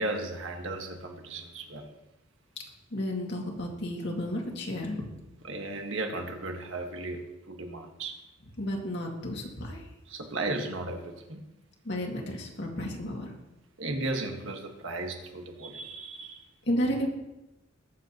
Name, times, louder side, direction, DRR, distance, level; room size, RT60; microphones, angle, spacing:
voice 1, 0.0-1.9 5.4-8.2 10.0-11.4 13.8-16.5, right 2 dB, 70° right, 3 dB, 1.6 m, -35 dB
voice 2, 2.9-5.1 8.6-9.8 11.8-13.3 16.7-17.1, equal, 60° left, 0 dB, 2.2 m, -32 dB
21.0 x 7.8 x 2.9 m, 0.97 s
head